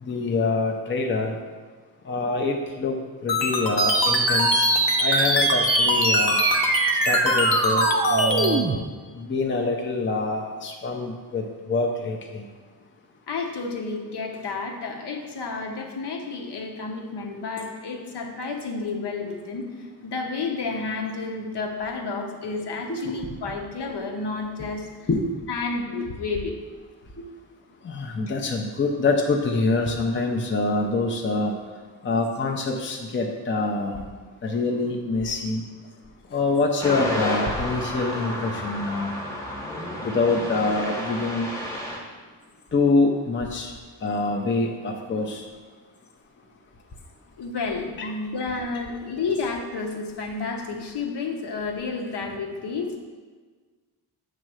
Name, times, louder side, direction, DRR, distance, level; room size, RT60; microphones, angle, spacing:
voice 1, 0.0-1.3 2.1-3.0 3.2-4.7 5.0-6.4 7.0-8.6 9.1-12.5 22.9-23.2 25.1-25.2 27.8-31.5 32.0-34.0 34.4-35.6 36.3-39.2 40.0-41.5 42.7-43.7 44.0-45.4 48.0-48.1, left 3 dB, 25° left, 1 dB, 0.6 m, -25 dB
sound 1, 3.3-8.5, left 4 dB, 90° left, 1.0 m, -24 dB
sound 2, 3.8-8.8, right 4 dB, 35° right, 0.5 m, -23 dB
voice 2, 13.3-19.7 20.0-24.9 25.5-26.5 47.4-53.0, left 4 dB, 65° left, 2 dB, 1.0 m, -31 dB
sound 3, 36.8-42.0, left 1 dB, 5° left, 1.1 m, -31 dB
7.6 x 3.2 x 6.2 m, 1.4 s
wide cardioid pair, 150°, 43 cm